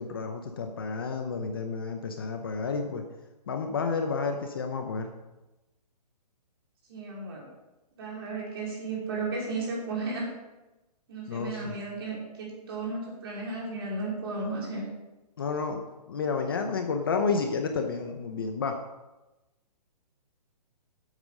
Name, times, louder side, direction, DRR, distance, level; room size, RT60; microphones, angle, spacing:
voice 1, 0.0-3.0 3.5-5.1 11.3-11.8 15.4-18.7, left 4 dB, 35° left, 5 dB, 0.7 m, -31 dB
voice 2, 6.9-7.5 8.0-10.3 11.1-14.9, right 3 dB, 35° right, -3 dB, 3.3 m, -34 dB
9.1 x 8.2 x 5.4 m, 1.0 s
hypercardioid pair, 175°, 21 cm